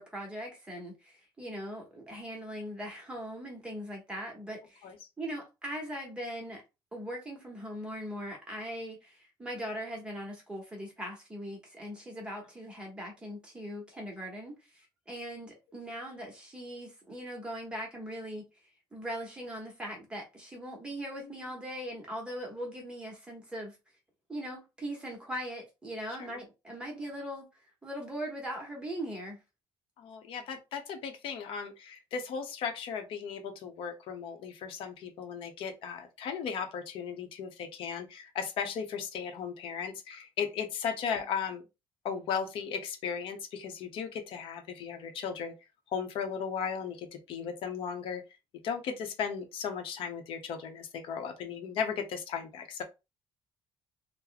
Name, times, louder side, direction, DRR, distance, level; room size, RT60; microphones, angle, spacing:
voice 1, 0.0-4.9 5.2-6.6 6.9-18.4 18.9-23.7 24.3-27.5 27.8-29.4, equal, 10° right, 0.9 m, -40 dB
voice 2, 30.0-41.6 42.0-45.5 45.9-48.2 48.6-52.8, left 7 dB, 65° left, 0.8 m, -36 dB
2.9 x 2.1 x 3.9 m
cardioid pair, 170°, 10 cm